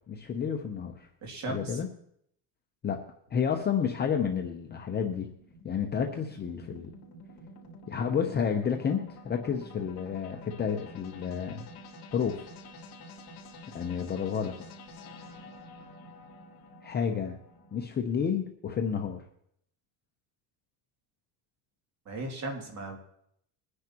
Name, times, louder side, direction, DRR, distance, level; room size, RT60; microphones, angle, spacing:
voice 1, 0.1-1.1 1.5-1.9 2.8-3.0 3.3-5.3 5.6-6.9 7.9-11.7 12.1-12.5 13.7-14.6 16.8-17.4 17.7-19.2, left 7 dB, 25° left, 3 dB, 0.7 m, -30 dB
voice 2, 1.2-1.8 22.1-23.0, right 2 dB, 40° right, 2 dB, 2.6 m, -36 dB
sound 1, 4.3-17.9, left 1 dB, 50° left, 3.0 m, -49 dB
22.5 x 9.8 x 2.9 m, 0.72 s
cardioid pair, 150°, 44 cm